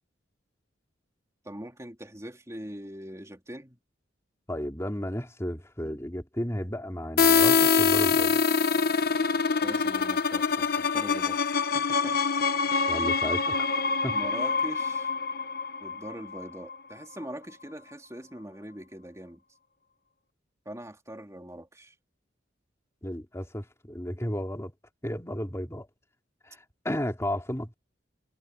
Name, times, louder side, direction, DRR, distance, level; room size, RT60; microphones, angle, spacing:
voice 1, 1.4-3.8 9.6-12.4 14.1-15.1 15.8-19.4 20.6-21.9, right 1 dB, 15° right, 3.0 m, -42 dB
voice 2, 4.5-8.4 12.9-13.7 14.0-14.2 23.0-24.7 25.0-25.9 26.4-27.7, equal, 15° left, 3.0 m, -33 dB
sound 1, 7.2-16.8, left 5 dB, 55° left, 1.0 m, -25 dB
head